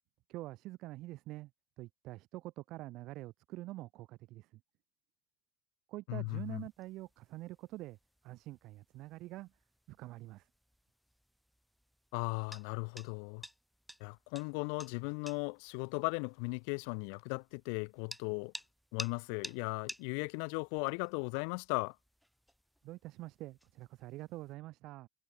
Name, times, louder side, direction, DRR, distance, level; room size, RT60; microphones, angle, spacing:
voice 1, 0.3-1.5 1.8-4.6 5.9-8.0 8.2-9.5 9.9-10.5 22.8-25.1, right 18 dB, 55° right, 6.4 m, -46 dB
voice 2, 6.1-6.6 12.1-13.4 14.0-18.5 18.9-21.9, left 40 dB or more, 75° left, 3.1 m, -37 dB
sound 1, 6.3-24.5, equal, ahead, 6.4 m, -54 dB
supercardioid pair, 125°, 0 cm